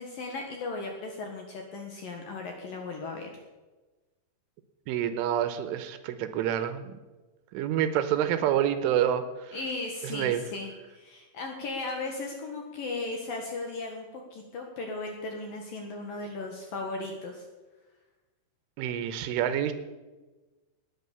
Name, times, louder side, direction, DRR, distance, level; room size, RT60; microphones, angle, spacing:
voice 1, 0.0-3.3 9.5-17.4, left 3 dB, 60° left, 2 dB, 2.5 m, -36 dB
voice 2, 4.9-7.0 7.5-9.6 10.0-10.4 18.8-19.7, right 10 dB, 80° right, 11 dB, 3.3 m, -28 dB
19.0 x 9.3 x 7.0 m, 1.2 s
omnidirectional pair, 5.9 m